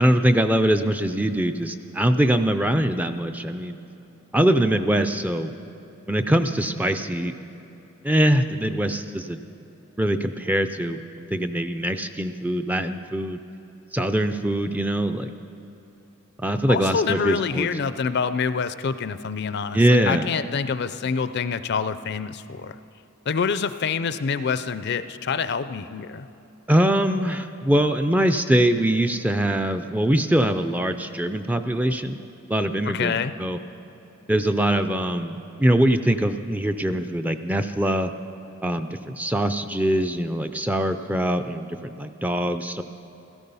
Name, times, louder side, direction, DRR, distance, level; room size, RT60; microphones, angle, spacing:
voice 1, 0.0-3.8 4.3-5.5 6.1-7.3 8.0-9.4 10.0-11.0 11.3-13.4 13.9-15.3 16.4-17.7 19.7-20.3 26.7-32.2 32.5-33.6 34.3-38.1 38.6-42.8, right 1 dB, 10° right, 8 dB, 0.4 m, -22 dB
voice 2, 16.7-22.8 23.3-26.3 32.9-33.3, left 5 dB, 55° left, 13 dB, 0.5 m, -26 dB
16.0 x 14.5 x 5.5 m, 3.0 s
head